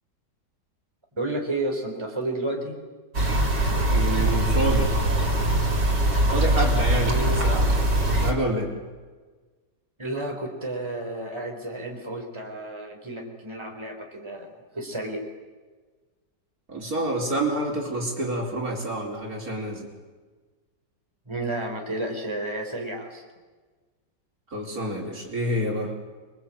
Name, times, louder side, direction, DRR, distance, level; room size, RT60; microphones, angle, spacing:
voice 1, 1.2-2.8 7.1-7.5 10.0-15.2 21.3-23.2, right 1 dB, 15° right, 2 dB, 4.1 m, -31 dB
sound 1, 3.1-8.3, right 1 dB, 75° right, 4.1 m, -22 dB
voice 2, 3.9-4.9 6.3-7.9 8.2-8.7 16.7-19.9 24.5-25.9, right 1 dB, 55° right, 0 dB, 4.9 m, -28 dB
28.0 x 23.0 x 8.7 m, 1.3 s
omnidirectional pair, 1.9 m